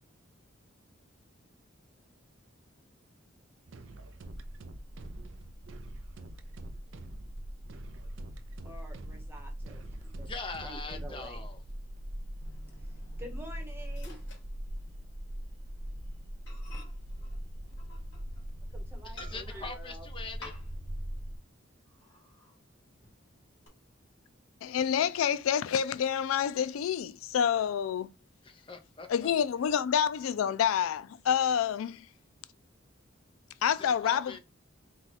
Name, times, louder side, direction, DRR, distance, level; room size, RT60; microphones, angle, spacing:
sound 1, 3.7-11.4, right 2 dB, 75° right, 0.5 m, -48 dB
sound 2, 4.2-21.4, equal, 35° right, 0.8 m, -41 dB
voice 1, 8.6-10.3 10.6-11.5 13.2-14.2 18.7-20.1, right 1 dB, 10° right, 1.0 m, -48 dB
voice 2, 10.3-11.6 19.0-20.5 28.4-29.3 33.8-34.4, left 4 dB, 25° left, 0.7 m, -42 dB
Microwave oven, 12.4-15.3 15.6-15.8 16.1-16.2 16.5-18.5 19.2-19.8 20.4-21.0 21.3-21.4 21.8-22.6 23.0-23.7, left 2 dB, 60° left, 2.8 m, -53 dB
voice 3, 24.6-28.1 29.1-32.1 33.6-34.4, left 8 dB, 85° left, 0.3 m, -28 dB
4.5 x 2.3 x 4.1 m
head